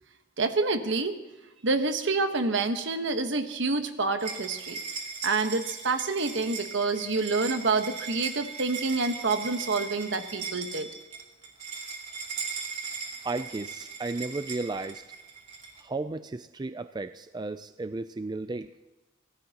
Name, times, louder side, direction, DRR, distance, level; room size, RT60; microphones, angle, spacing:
voice 1, 0.4-1.2 1.6-4.8 5.2-11.0, right 3 dB, 65° right, 8 dB, 1.2 m, -28 dB
sound 1, 4.2-15.8, right 5 dB, 35° right, 2.6 m, -38 dB
voice 2, 13.2-15.0 15.8-18.7, right 3 dB, 20° right, 11 dB, 0.4 m, -34 dB
24.5 x 17.0 x 2.9 m, 1.1 s
head